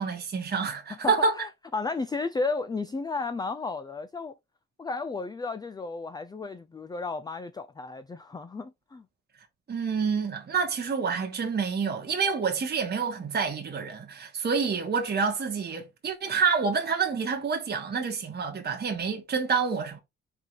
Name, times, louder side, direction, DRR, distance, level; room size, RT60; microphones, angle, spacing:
voice 1, 0.0-1.3 9.7-20.0, right 5 dB, 35° right, 1.2 m, -28 dB
voice 2, 0.9-4.3 4.8-9.1, left 3 dB, 15° left, 0.4 m, -33 dB
4.6 x 2.6 x 4.0 m
cardioid pair, 90°, 30 cm